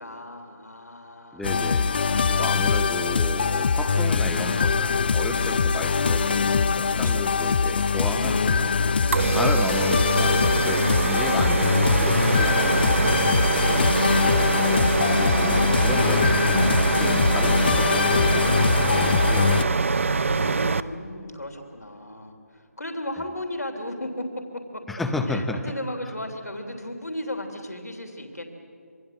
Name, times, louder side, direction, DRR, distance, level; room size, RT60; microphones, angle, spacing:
voice 1, 0.0-1.5 5.2-5.7 6.7-7.2 9.0-9.3 12.5-14.5 20.3-24.8 25.3-28.4, left 1 dB, 85° left, 3 dB, 3.2 m, -36 dB
voice 2, 1.3-8.7 9.3-13.2 14.6-19.8 24.9-25.6, left 2 dB, ahead, 6 dB, 0.7 m, -34 dB
sound 1, 1.4-19.6, left 5 dB, 40° left, 0.6 m, -22 dB
sound 2, 9.1-20.8, right 4 dB, 55° right, 0.8 m, -24 dB
26.0 x 23.0 x 7.8 m, 2.5 s
figure-of-eight pair, 160°, 9 cm